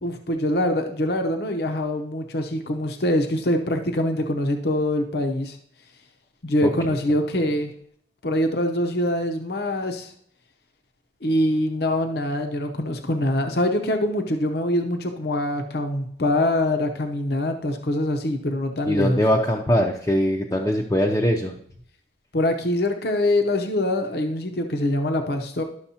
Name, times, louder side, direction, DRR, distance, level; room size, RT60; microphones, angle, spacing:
voice 1, 0.0-5.6 6.4-7.7 8.2-10.1 11.2-19.2 22.3-25.6, left 1 dB, 60° left, 5 dB, 0.7 m, -24 dB
voice 2, 18.8-21.6, equal, 15° left, -1 dB, 0.6 m, -21 dB
11.5 x 6.4 x 2.8 m, 0.63 s
head